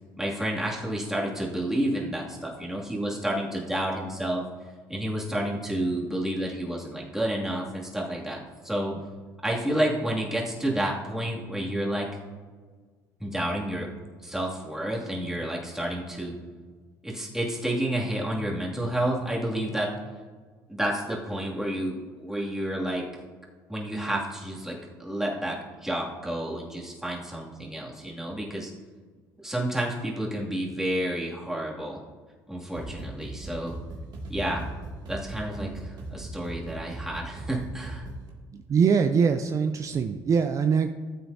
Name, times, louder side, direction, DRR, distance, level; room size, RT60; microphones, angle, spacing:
voice 1, 0.2-4.4 4.9-8.4 8.6-8.9 9.4-12.1 13.2-13.9 14.2-16.3 17.0-19.9 20.7-23.0 23.7-28.7 29.4-32.0 32.5-33.8 34.3-34.7 35.1-38.1, right 1 dB, 5° right, -3 dB, 2.4 m, -30 dB
sound 1, 32.7-38.3, right 2 dB, 60° right, 2.2 m, -39 dB
voice 2, 38.5-40.9, right 6 dB, 40° right, 8 dB, 0.5 m, -23 dB
14.5 x 7.9 x 2.7 m, 1.5 s
supercardioid pair, 95°, 8 cm